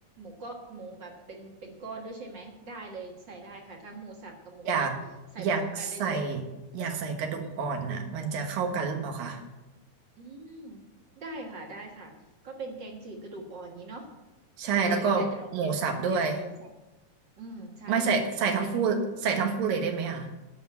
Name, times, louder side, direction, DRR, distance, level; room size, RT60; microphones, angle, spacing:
voice 1, 0.2-4.9 5.3-5.5 5.8-6.3 10.2-10.8 11.2-12.1 12.4-14.1 14.7-15.7 16.1-16.7 17.4-18.1 18.5-18.7 19.0-19.2, right 2 dB, 50° right, 1 dB, 1.5 m, -42 dB
voice 2, 4.7-5.0 5.4-6.4 6.7-9.4 14.6-15.3 15.5-16.4 17.9-20.3, right 5 dB, 85° right, 4 dB, 3.1 m, -28 dB
12.0 x 6.0 x 8.9 m, 1.1 s
omnidirectional pair, 3.9 m